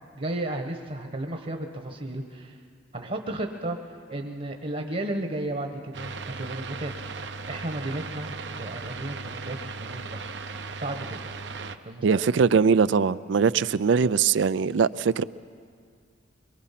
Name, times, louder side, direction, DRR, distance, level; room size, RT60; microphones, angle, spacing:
voice 1, 0.1-2.6 2.9-3.8 4.1-6.1 6.4-10.3 10.8-11.3 11.8-12.2, right 1 dB, 45° right, 1.2 m, -34 dB
sound 1, 5.9-11.8, right 4 dB, 70° right, 0.8 m, -37 dB
voice 2, 12.0-15.2, right 5 dB, 90° right, 0.4 m, -21 dB
23.5 x 23.0 x 5.9 m
head